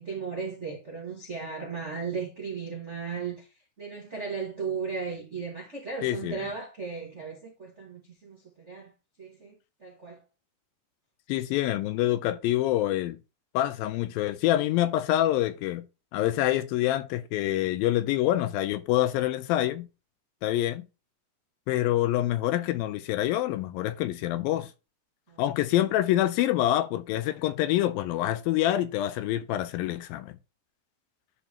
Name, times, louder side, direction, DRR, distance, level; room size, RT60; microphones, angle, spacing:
voice 1, 0.0-3.5 3.8-8.9 9.2-10.2 25.3-25.4, right 5 dB, 45° right, 0.9 m, -36 dB
voice 2, 6.0-6.4 11.3-13.2 13.5-15.9 16.1-19.9 20.4-20.9 21.7-24.7 25.4-30.3, left 14 dB, 80° left, 2.2 m, -26 dB
11.0 x 4.2 x 2.9 m
omnidirectional pair, 4.4 m